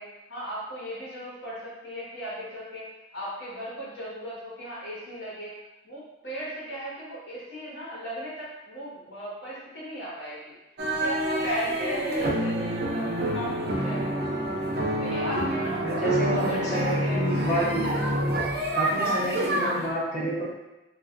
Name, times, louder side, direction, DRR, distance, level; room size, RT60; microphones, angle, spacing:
voice 1, 0.0-5.5 5.8-10.6 11.0-14.2 15.0-17.2 18.6-18.9, right 1 dB, 80° left, -8 dB, 1.2 m, -37 dB
sound 1, 10.8-19.9, right 1 dB, 60° right, 0.5 m, -27 dB
voice 2, 15.8-17.8 18.8-20.5, equal, 40° left, -6 dB, 0.8 m, -29 dB
3.2 x 2.6 x 2.5 m, 1.0 s
head